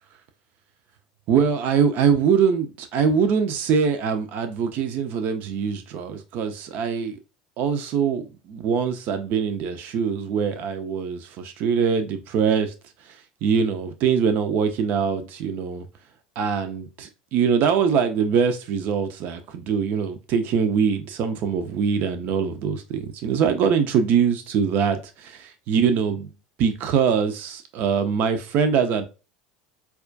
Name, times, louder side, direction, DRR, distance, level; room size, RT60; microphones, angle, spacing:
voice 1, 1.3-7.2 7.6-12.7 13.1-15.9 16.4-26.3 26.6-29.1, right 6 dB, 50° right, 0.5 m, -23 dB
4.2 x 2.3 x 2.4 m
hypercardioid pair, 75°, 4 cm